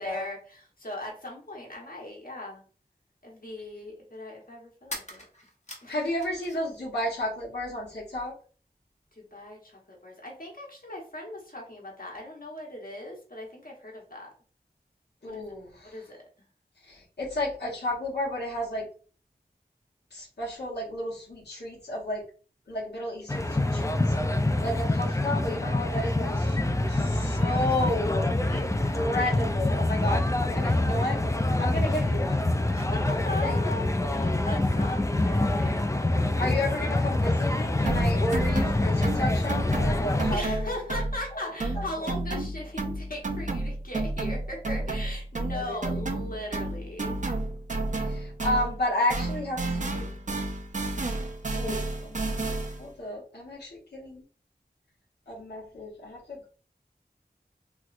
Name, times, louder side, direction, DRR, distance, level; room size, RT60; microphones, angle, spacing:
voice 1, 0.0-2.6 3.2-5.2 5.8-5.9 9.1-14.3 15.3-15.4 15.8-16.2 32.7-36.0 40.3-47.2, left 1 dB, 60° left, -2 dB, 1.1 m, -39 dB
sound 1, 4.8-6.8 7.1-7.9, left 1 dB, 45° left, 0.9 m, -43 dB
voice 2, 5.9-8.3 15.2-15.9 16.8-18.9 20.1-22.2 22.7-24.1 24.6-26.6 26.9-31.2 31.6-32.4 33.4-33.7 36.4-40.7 41.7-41.8 45.5-45.8 48.0-50.1 51.5-52.5 52.8-54.2 55.3-56.4, left 1 dB, 85° left, -6 dB, 1.0 m, -32 dB
sound 2, 23.3-40.4, left 2 dB, 20° left, 0.4 m, -26 dB
sound 3, 37.9-41.3 41.6-48.8 49.1-52.9, right 2 dB, 50° right, 0.5 m, -31 dB
3.1 x 3.0 x 2.4 m, 0.40 s
wide cardioid pair, 45°, 17 cm